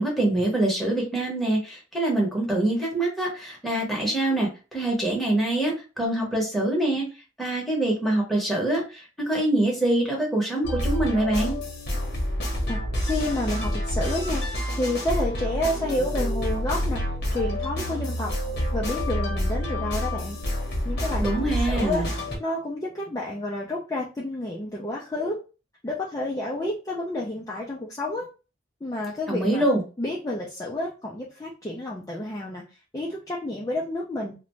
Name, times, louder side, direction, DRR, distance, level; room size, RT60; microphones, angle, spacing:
voice 1, 0.0-7.0 7.4-11.6 21.2-22.1 29.3-29.8, right 1 dB, ahead, -3 dB, 0.8 m, -25 dB
sound 1, 10.6-22.4, equal, 50° left, 0.8 m, -28 dB
voice 2, 12.7-17.0 17.3-18.3 18.7-20.4 20.8-22.1 22.4-25.4 25.8-28.3 28.8-29.7 30.0-32.6 32.9-34.3, left 1 dB, 15° left, -3 dB, 0.3 m, -30 dB
2.5 x 2.1 x 3.0 m, 0.32 s
head